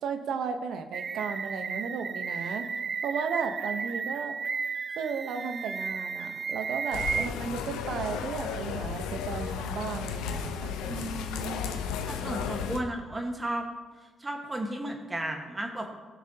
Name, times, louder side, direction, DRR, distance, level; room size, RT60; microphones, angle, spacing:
voice 1, 0.0-2.7 3.0-4.4 5.0-10.8, right 6 dB, 75° right, 7 dB, 0.9 m, -34 dB
sound 1, 0.9-7.3, right 5 dB, 50° right, 0.4 m, -33 dB
sound 2, 6.9-12.8, left 7 dB, 85° left, 0.7 m, -34 dB
voice 2, 10.8-11.6 12.1-13.7 14.2-16.0, right 1 dB, 25° right, 2 dB, 1.4 m, -34 dB
17.0 x 6.3 x 2.8 m, 1.4 s
supercardioid pair, 60°, 0 cm